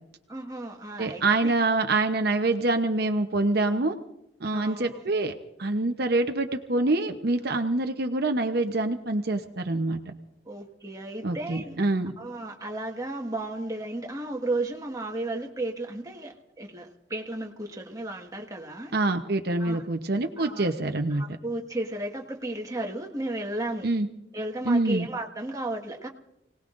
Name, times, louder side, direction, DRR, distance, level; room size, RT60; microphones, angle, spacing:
voice 1, 0.3-1.5 4.5-5.0 10.5-11.8 12.2-18.9 19.6-19.8 20.4-20.7 21.1-23.9 24.3-26.1, right 2 dB, 20° right, 1 dB, 1.7 m, -34 dB
voice 2, 1.0-4.0 4.4-5.3 5.6-10.0 11.2-12.1 18.9-21.2 23.8-24.1 24.6-25.1, right 2 dB, 65° right, 5 dB, 0.9 m, -25 dB
29.0 x 18.5 x 2.6 m, 0.84 s
head